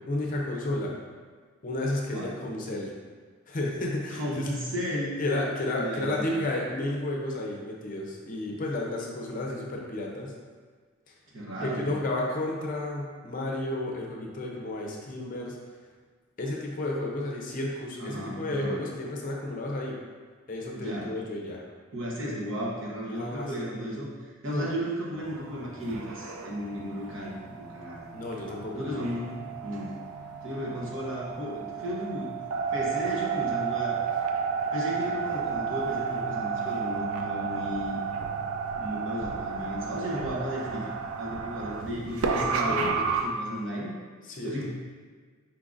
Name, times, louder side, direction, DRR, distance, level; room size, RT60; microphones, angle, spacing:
voice 1, 0.1-1.0 1.6-2.9 3.5-4.2 5.2-10.3 11.6-15.6 16.4-19.9 20.5-21.6 23.1-23.5 24.5-24.7 28.1-29.0 34.9-35.1 42.4-43.1 44.3-44.7, left 1 dB, 40° left, -1 dB, 0.6 m, -32 dB
voice 2, 4.1-5.2 5.7-6.3 11.3-11.9 18.0-18.8 20.8-21.2 21.9-28.1 28.7-30.0 30.4-32.3 32.7-34.0 34.7-38.0 38.8-40.9 41.2-43.9 44.4-44.7, equal, 60° right, -5 dB, 1.0 m, -34 dB
sound 1, 25.2-43.2, right 6 dB, 85° right, 0.4 m, -32 dB
4.5 x 3.7 x 2.5 m, 1.5 s
head